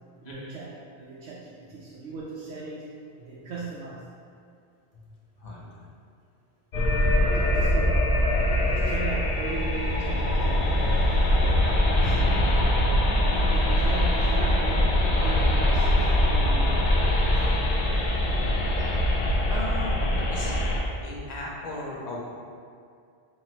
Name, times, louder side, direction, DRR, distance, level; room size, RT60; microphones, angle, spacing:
voice 1, 0.2-2.9 3.2-4.0 7.1-10.9 11.3-12.3 13.3-14.8 15.1-16.7 17.2-17.7 18.8-18.9, right 4 dB, 85° right, -5 dB, 0.9 m, -38 dB
voice 2, 5.4-5.9 19.5-20.6 21.0-22.2, left 2 dB, 45° left, -5 dB, 0.8 m, -37 dB
sound 1, 6.7-20.8, left 1 dB, 60° left, 0.4 m, -23 dB
3.0 x 2.8 x 4.2 m, 2.3 s
omnidirectional pair, 1.2 m